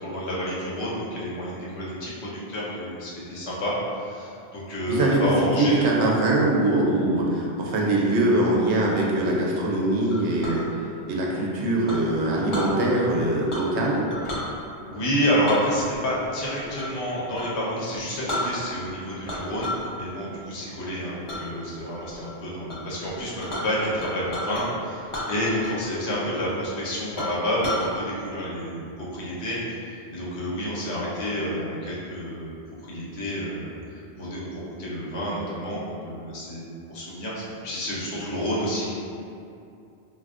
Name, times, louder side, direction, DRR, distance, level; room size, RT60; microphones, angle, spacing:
voice 1, 0.0-5.8 14.8-32.6 32.8-33.8 34.2-38.9, equal, 80° left, -6 dB, 1.0 m, -29 dB
voice 2, 4.9-10.6 11.1-14.1, right 1 dB, 85° right, -3 dB, 0.9 m, -22 dB
Chink clink, 10.1-10.6 11.9-12.7 13.5-13.8 14.1-14.5 15.5-17.0 17.3-17.5 17.9-18.0 18.3-18.9 19.2-19.9 20.3-20.6 21.3-21.4 21.9-22.3 22.7-22.8 23.0-24.6 25.1-25.9 26.1-26.2 26.7-26.8 27.2-27.9, left 1 dB, 40° left, 0.4 m, -33 dB
3.3 x 2.5 x 2.4 m, 2.6 s
omnidirectional pair, 1.1 m